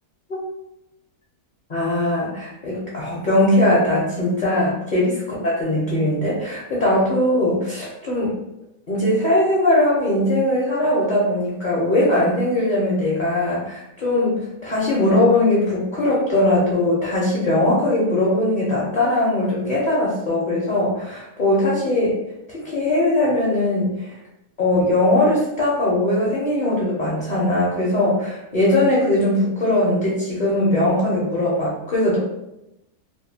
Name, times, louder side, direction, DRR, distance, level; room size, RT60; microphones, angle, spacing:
voice 1, 1.7-8.4 8.9-22.2 22.5-24.1 24.6-32.2, left 1 dB, 50° left, -6 dB, 0.6 m, -20 dB
2.7 x 2.3 x 2.7 m, 0.88 s
omnidirectional pair, 1.6 m